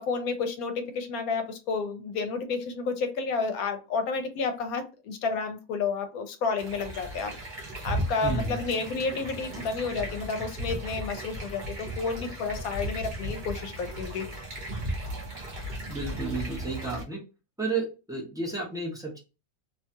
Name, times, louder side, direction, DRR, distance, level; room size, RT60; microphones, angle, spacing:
voice 1, 0.0-7.3 7.8-14.3, left 4 dB, 80° left, 1.0 m, -31 dB
sound 1, 6.6-17.0, equal, 45° right, 0.7 m, -36 dB
voice 2, 8.2-8.5 15.9-17.2 17.6-19.2, right 3 dB, 5° right, 0.5 m, -32 dB
2.7 x 2.3 x 2.7 m
omnidirectional pair, 1.5 m